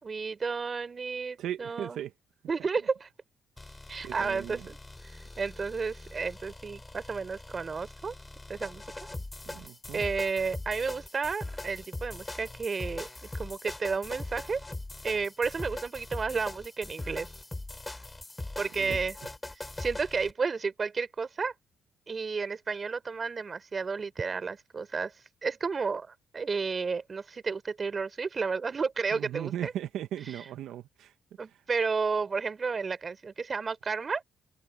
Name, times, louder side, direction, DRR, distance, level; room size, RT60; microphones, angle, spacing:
voice 1, 0.0-2.0 2.4-3.1 3.9-4.8 5.0-8.1 8.5-9.1 9.9-14.6 15.0-17.3 18.6-19.1 19.5-21.5 22.1-25.1 25.4-29.7 31.4-34.2, right 5 dB, 35° right, 3.5 m, -32 dB
voice 2, 1.4-2.1 3.7-4.7 9.5-10.0 18.8-19.0 29.1-31.1 31.5-31.6, right 11 dB, 80° right, 0.8 m, -38 dB
sound 1, 3.6-20.3, left 2 dB, 15° left, 3.3 m, -41 dB
open air
cardioid pair, 90°, 0 cm